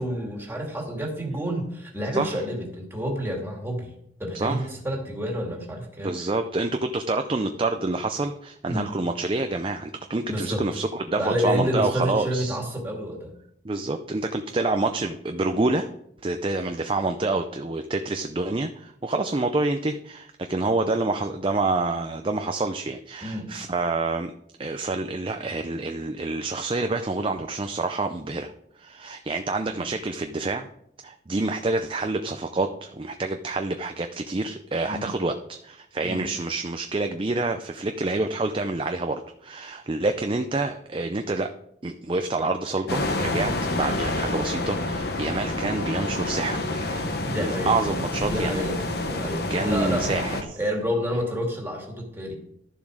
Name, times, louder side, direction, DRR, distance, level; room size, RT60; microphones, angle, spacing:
voice 1, 0.0-3.9 4.2-6.1 8.7-8.9 10.3-10.7 11.2-13.3 23.2-23.5 29.7-29.8 34.9-35.1 36.0-36.2 47.2-47.8 48.2-50.1 50.6-52.3, equal, 10° right, 0 dB, 2.2 m, -29 dB
voice 2, 6.0-12.6 13.6-15.9 16.2-24.3 24.6-28.5 28.8-30.7 31.0-41.5 41.8-47.1 47.4-48.6 49.5-50.6, right 2 dB, 25° right, 6 dB, 0.4 m, -27 dB
sound 1, 42.9-50.4, left 2 dB, 55° left, 1.1 m, -28 dB
12.0 x 7.1 x 4.9 m, 0.74 s
head